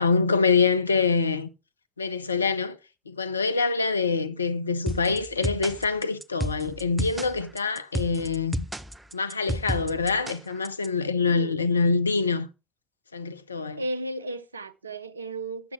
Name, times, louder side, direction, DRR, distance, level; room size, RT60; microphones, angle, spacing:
voice 1, 0.0-1.5 2.0-2.8 3.1-8.7 9.1-12.5 13.1-13.8, left 4 dB, 85° left, 0.5 m, -25 dB
sound 1, 4.9-10.9, right 1 dB, 10° right, 0.6 m, -32 dB
voice 2, 11.3-11.7 13.8-15.7, right 2 dB, 85° right, 0.5 m, -34 dB
8.0 x 7.2 x 4.8 m
figure-of-eight pair, 55°, 0 cm